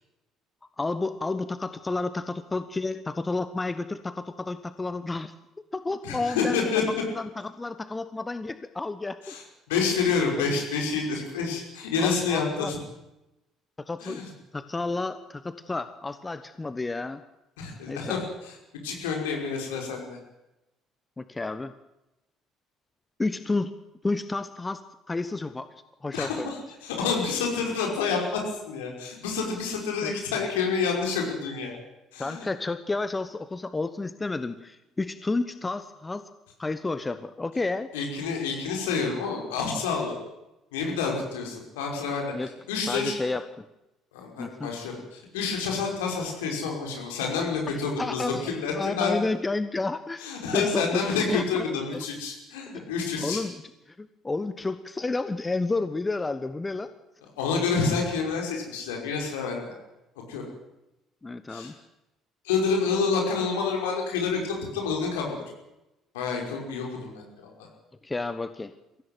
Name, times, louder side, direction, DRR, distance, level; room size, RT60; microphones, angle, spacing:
voice 1, 0.8-5.3 5.7-6.6 7.1-9.4 10.4-10.5 12.0-12.7 13.8-14.3 14.5-17.2 17.9-18.2 21.2-21.7 23.2-23.7 24.0-25.7 26.0-26.5 30.0-30.2 32.2-36.3 36.6-37.9 42.3-42.5 42.9-43.7 44.4-44.7 47.7-51.7 51.9-52.0 52.7-52.9 53.2-56.9 61.2-61.7 68.0-68.7, left 3 dB, 20° left, 12 dB, 1.1 m, -31 dB
voice 2, 6.0-6.9 9.2-9.4 9.7-12.8 14.0-14.3 17.6-18.5 18.8-20.2 26.1-31.8 32.1-32.5 37.9-40.2 40.7-42.3 42.7-43.2 44.1-49.3 50.2-53.4 57.4-59.8 60.3-60.5 61.5-61.7 62.4-65.3 66.1-67.7, left 5 dB, 70° left, 0 dB, 5.5 m, -28 dB
23.5 x 16.0 x 9.4 m, 0.95 s
figure-of-eight pair, 55°, 0 cm